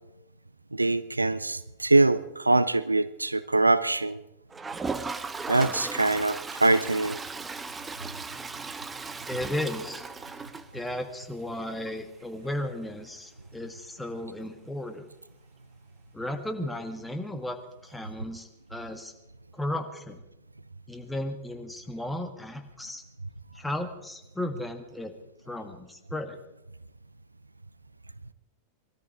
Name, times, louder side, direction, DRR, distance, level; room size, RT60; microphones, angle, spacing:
voice 1, 0.7-4.2 5.5-7.2, right 2 dB, 85° right, 17 dB, 0.5 m, -23 dB
Toilet flush, 4.5-11.2 11.6-11.7 11.9-12.0 12.2-12.3 14.9-15.0 16.3-16.4, right 4 dB, 15° right, 0.8 m, -37 dB
voice 2, 9.3-10.0 10.7-15.1 16.1-17.6 17.8-19.1 19.5-20.2 20.9-23.0 23.5-25.1 25.5-26.4, left 1 dB, 5° left, 5 dB, 1.7 m, -35 dB
20.5 x 13.5 x 4.9 m, 0.93 s
figure-of-eight pair, 90°, 0 cm